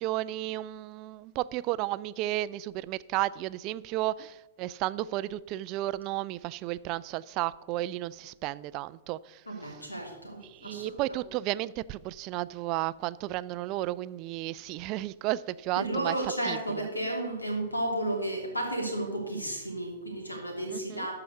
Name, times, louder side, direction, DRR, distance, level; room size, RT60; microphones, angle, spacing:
voice 1, 0.0-9.8 10.4-16.2 16.4-16.9 20.7-21.1, right 16 dB, 35° right, 0.3 m, -33 dB
voice 2, 9.5-10.9 15.8-21.2, right 1 dB, 80° left, 2.9 m, -33 dB
13.0 x 4.9 x 6.6 m
figure-of-eight pair, 100°, 0 cm